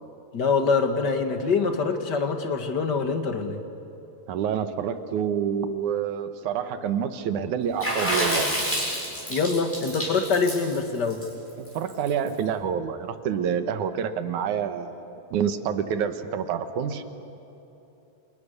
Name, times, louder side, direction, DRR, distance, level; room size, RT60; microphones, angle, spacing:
voice 1, 0.3-3.6 9.3-11.2, left 4 dB, 40° left, 6 dB, 2.0 m, -24 dB
voice 2, 4.3-8.5 11.6-15.0 15.3-17.0, right 8 dB, 85° right, 9 dB, 2.7 m, -27 dB
Water / Splash splatter, 7.8-12.3, equal, 5° left, 7.7 m, -28 dB
29.0 x 28.5 x 6.8 m, 3.0 s
omnidirectional pair, 3.4 m